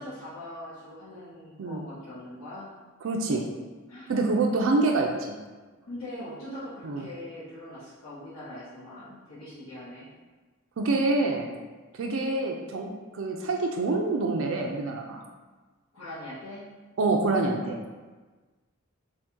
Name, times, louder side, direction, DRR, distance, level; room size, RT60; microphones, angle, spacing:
voice 1, 0.0-2.7 3.9-4.1 5.9-10.1 15.9-16.7, left 1 dB, 90° left, -14 dB, 1.1 m, -41 dB
voice 2, 3.0-3.4 4.1-5.4 6.8-7.0 10.8-11.5 12.0-15.2 17.0-17.8, right 3 dB, 65° right, 1 dB, 0.4 m, -26 dB
2.7 x 2.6 x 3.5 m, 1.3 s
head